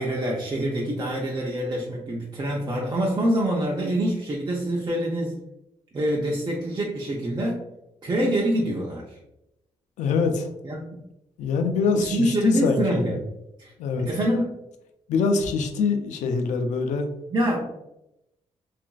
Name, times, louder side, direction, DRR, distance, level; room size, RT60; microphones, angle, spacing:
voice 1, 0.0-5.4 5.9-7.6 8.0-9.2 10.6-10.8 11.9-13.2 13.6-13.7 14.0-14.6 17.3-17.6, right 1 dB, 35° right, -3 dB, 0.6 m, -25 dB
voice 2, 10.0-10.5 11.4-13.0 13.8-14.1 15.1-17.1, left 4 dB, 85° left, 5 dB, 0.4 m, -24 dB
2.9 x 2.5 x 2.3 m, 0.86 s
cardioid pair, 75°, 12 cm